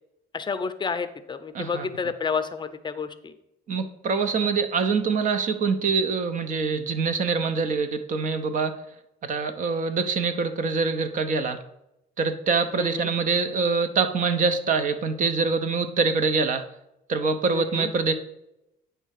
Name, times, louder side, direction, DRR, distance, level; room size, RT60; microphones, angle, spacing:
voice 1, 0.3-3.3 12.7-13.1 17.5-17.9, left 5 dB, 25° left, 10 dB, 0.6 m, -30 dB
voice 2, 1.5-1.9 3.7-8.8 9.2-11.6 12.2-16.7 17.1-18.1, right 4 dB, 50° right, 9 dB, 0.8 m, -24 dB
9.1 x 3.3 x 6.5 m, 0.85 s
cardioid pair, 110°, 17 cm